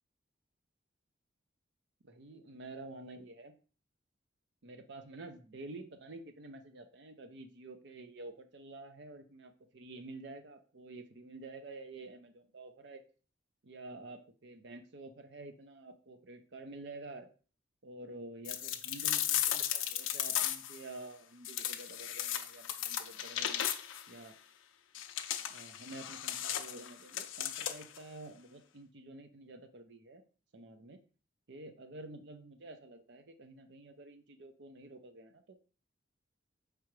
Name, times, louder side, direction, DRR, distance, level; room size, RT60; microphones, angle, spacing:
voice 1, 2.0-3.5 4.6-13.0 13.6-17.3 17.8-23.6 24.1-24.4 25.5-30.2 30.5-31.0 31.5-35.6, right 2 dB, 65° right, 7 dB, 0.6 m, -49 dB
sound 1, 18.4-20.8 21.4-24.1 24.9-28.0, left 11 dB, 80° left, 0.4 m, -35 dB
4.8 x 3.3 x 3.1 m, 0.38 s
head